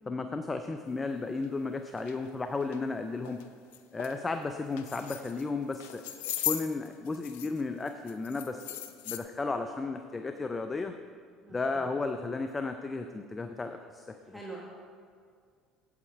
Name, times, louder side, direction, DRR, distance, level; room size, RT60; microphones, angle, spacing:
voice 1, 0.1-3.4 3.9-10.9 11.5-14.4, left 3 dB, 25° left, 7 dB, 0.5 m, -34 dB
sound 1, 1.4-1.5 2.0-2.1 2.6-2.8 3.3-3.4 3.7-4.2 4.7-5.4 5.7-7.6 7.9-9.2, left 12 dB, 80° left, 0.5 m, -37 dB
voice 2, 14.3-14.6, right 3 dB, 5° right, -3 dB, 1.3 m, -44 dB
8.4 x 8.3 x 4.5 m, 2.1 s
hypercardioid pair, 70°, 0 cm